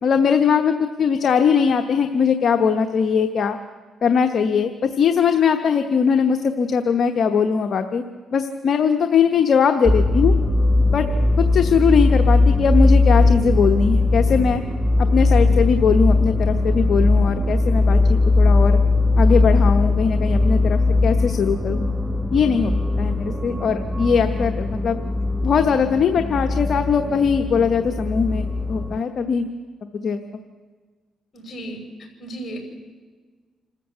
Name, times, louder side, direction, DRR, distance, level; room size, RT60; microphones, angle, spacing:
voice 1, 0.0-3.6 4.0-8.0 8.3-10.3 10.9-11.1 11.4-14.6 15.1-18.8 19.2-21.8 22.3-22.7 23.0-25.0 25.4-29.5 30.0-30.4, left 6 dB, 55° left, 6 dB, 1.0 m, -20 dB
sound 1, 9.9-29.0, left 2 dB, 10° right, 0.9 m, -19 dB
voice 2, 31.3-31.8 32.2-32.6, right 1 dB, 40° left, 2 dB, 5.9 m, -34 dB
26.5 x 14.0 x 7.9 m, 1.5 s
cardioid pair, 90°, 0 cm